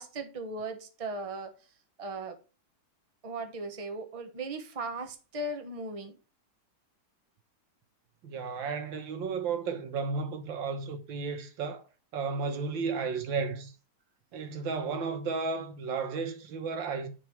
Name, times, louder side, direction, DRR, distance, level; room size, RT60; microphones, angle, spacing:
voice 1, 0.0-1.5 2.0-2.4 3.2-6.1, right 2 dB, 25° right, 1.0 m, -37 dB
voice 2, 8.2-11.9 12.1-13.7 14.3-17.1, right 5 dB, 85° right, 1.9 m, -33 dB
9.9 x 4.1 x 4.6 m
omnidirectional pair, 2.0 m